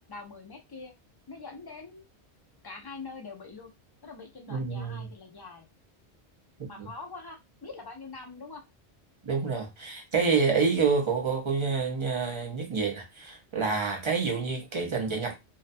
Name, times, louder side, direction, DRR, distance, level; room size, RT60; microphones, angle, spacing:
voice 1, 0.1-0.9 1.3-2.0 2.6-3.7 4.0-5.7 6.7-8.6, left 4 dB, 35° left, 0.4 m, -44 dB
voice 2, 4.5-5.1 6.8-6.9 9.2-15.3, right 5 dB, 30° right, 0.6 m, -28 dB
2.6 x 2.2 x 2.5 m
omnidirectional pair, 1.1 m